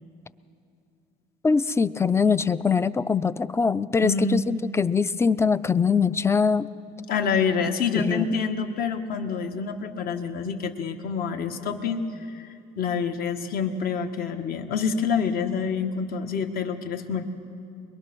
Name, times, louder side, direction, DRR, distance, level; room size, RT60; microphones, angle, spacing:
voice 1, 1.4-6.7 7.9-8.3, left 5 dB, 15° left, 16 dB, 0.4 m, -22 dB
voice 2, 4.0-4.5 7.1-12.5 12.8-17.3, left 5 dB, 60° left, 5 dB, 1.5 m, -27 dB
22.5 x 22.5 x 6.2 m, 2.5 s
cardioid pair, 110°, 17 cm